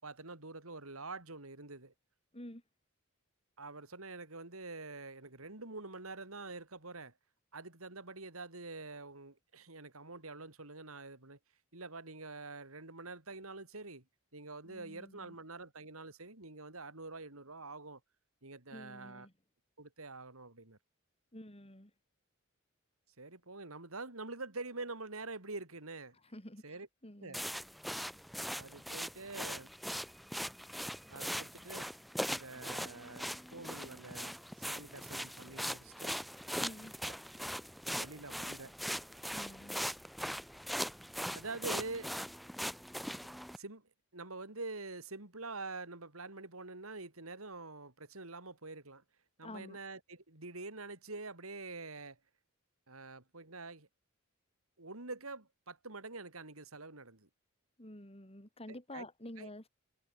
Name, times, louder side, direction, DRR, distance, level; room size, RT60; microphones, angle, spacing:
voice 1, 0.0-1.9 3.6-7.1 7.5-11.4 11.7-14.0 14.3-18.0 18.4-19.3 19.8-20.8 23.2-26.2 26.6-26.9 27.2-27.4 28.5-30.0 31.1-31.9 32.3-34.4 34.7-36.1 37.0-37.1 38.0-38.7 41.3-42.1 43.6-49.0 49.4-52.2 52.9-53.9 54.8-57.3 58.7-59.1 59.4-59.5, right 3 dB, 75° right, 4.1 m, -46 dB
voice 2, 14.7-15.3 18.7-19.3 21.3-21.9 26.3-27.5 36.6-36.9 39.3-39.8 49.4-49.8 57.8-59.6, left 1 dB, 30° left, 6.6 m, -49 dB
sound 1, 27.3-43.6, equal, ahead, 1.5 m, -41 dB
head